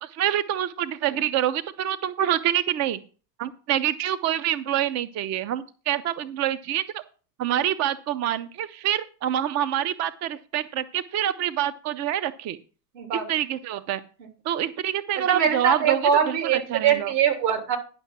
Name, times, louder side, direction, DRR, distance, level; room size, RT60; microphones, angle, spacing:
voice 1, 0.0-3.0 3.4-7.0 7.4-12.6 13.3-14.0 14.4-17.1, right 11 dB, 35° right, 13 dB, 0.5 m, -26 dB
voice 2, 12.9-13.3 15.3-17.8, right 7 dB, 75° right, 5 dB, 3.0 m, -22 dB
10.5 x 5.6 x 6.0 m, 0.37 s
hypercardioid pair, 105°, 50 cm